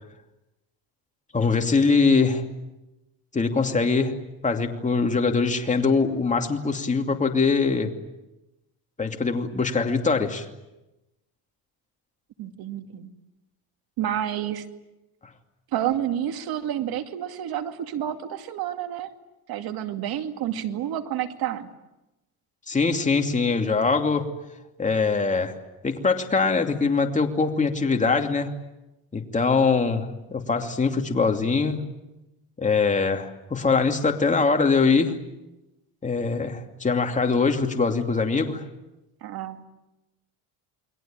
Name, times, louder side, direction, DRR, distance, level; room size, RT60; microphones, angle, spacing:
voice 1, 1.3-2.5 3.3-7.9 9.0-10.5 22.7-24.3 24.8-25.6 25.8-28.5 29.1-31.8 32.6-35.2 36.0-38.7, left 4 dB, 20° left, 4 dB, 2.7 m, -23 dB
voice 2, 12.4-13.1 14.0-14.6 15.7-19.1 19.5-21.7 39.2-39.6, right 10 dB, 65° right, 7 dB, 2.5 m, -29 dB
29.0 x 22.0 x 9.0 m, 0.98 s
cardioid pair, 125°, 39 cm